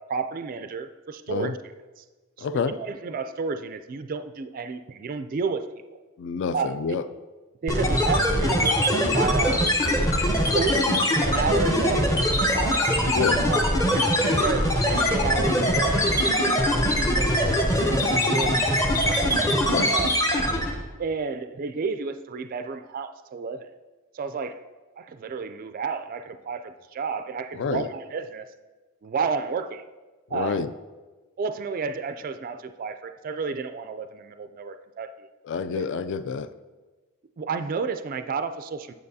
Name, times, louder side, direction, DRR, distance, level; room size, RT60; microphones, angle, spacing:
voice 1, 0.0-1.6 2.0-2.1 2.4-5.6 6.5-6.8 7.6-10.1 10.5-10.9 11.2-12.9 13.5-18.6 18.9-19.3 19.9-20.1 21.0-23.7 24.1-24.6 25.0-28.5 29.0-29.8 30.3-30.6 31.4-35.3 35.7-35.8 37.4-38.9, right 5 dB, 40° right, 9 dB, 0.3 m, -31 dB
voice 2, 2.4-2.8 6.2-7.0 10.7-11.0 13.1-13.4 19.7-20.0 27.5-27.9 30.3-30.7 35.4-36.5, left 5 dB, 55° left, 12 dB, 0.3 m, -28 dB
sound 1, 7.7-20.8, equal, 15° left, 0.7 m, -22 dB
8.7 x 7.5 x 2.7 m, 1.3 s
head